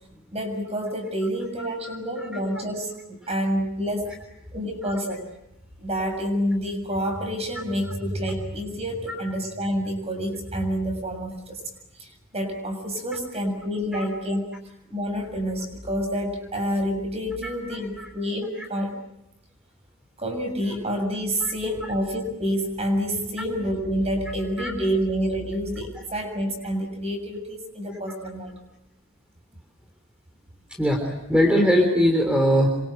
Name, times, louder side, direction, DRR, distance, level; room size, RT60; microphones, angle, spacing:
voice 1, 0.3-4.1 4.5-5.3 5.8-11.6 12.0-14.5 14.9-18.9 20.2-28.5, equal, 30° right, 4 dB, 7.1 m, -28 dB
voice 2, 1.8-2.3 3.2-3.3 9.1-9.2 13.9-14.0 17.4-18.1 18.6-18.7 21.4-21.5 24.6-24.7 27.9-28.0 30.8-32.7, equal, 5° right, 1 dB, 3.7 m, -22 dB
28.0 x 25.5 x 7.9 m, 0.87 s
head